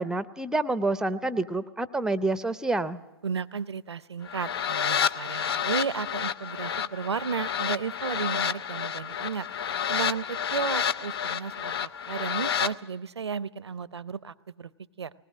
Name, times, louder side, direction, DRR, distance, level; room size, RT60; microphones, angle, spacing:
voice 1, 0.0-3.0, right 2 dB, 5° right, 14 dB, 0.6 m, -28 dB
voice 2, 3.2-9.5 9.9-14.7 15.0-15.1, right 6 dB, 90° right, 18 dB, 0.7 m, -33 dB
sound 1, 4.2-12.7, left 8 dB, 65° left, 0.6 m, -30 dB
20.0 x 19.0 x 7.5 m, 1.1 s
hypercardioid pair, 120°, 14 cm